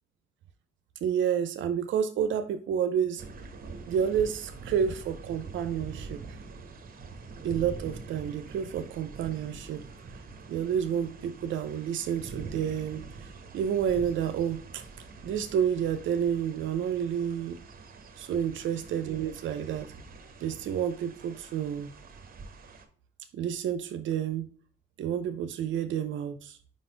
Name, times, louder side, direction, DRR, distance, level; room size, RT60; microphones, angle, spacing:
voice 1, 1.0-3.2 3.9-6.4 7.4-9.8 10.5-13.3 13.5-14.8 15.2-17.6 18.2-19.9 20.4-21.9 23.3-24.5 25.0-26.6, right 8 dB, 75° right, 0.6 m, -30 dB
sound 1, 3.2-22.9, right 4 dB, 45° right, 1.1 m, -45 dB
5.1 x 4.0 x 5.1 m
cardioid pair, 90°, 20 cm